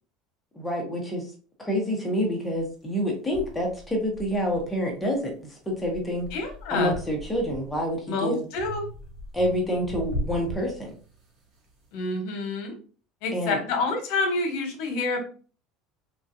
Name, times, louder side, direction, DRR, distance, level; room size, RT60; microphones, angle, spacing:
voice 1, 0.5-1.3 1.6-6.3 6.7-8.4 9.3-10.9 13.3-13.6, equal, 5° left, -1 dB, 0.8 m, -27 dB
sound 1, 2.5-2.6 3.3-5.2 5.6-8.0 8.6-11.3, equal, 35° right, 0.9 m, -38 dB
voice 2, 6.3-7.0 8.1-8.8 11.9-12.7 13.2-15.2, left 3 dB, 60° left, 3 dB, 1.1 m, -28 dB
3.7 x 2.3 x 2.7 m, 0.39 s
cardioid pair, 170°, 0 cm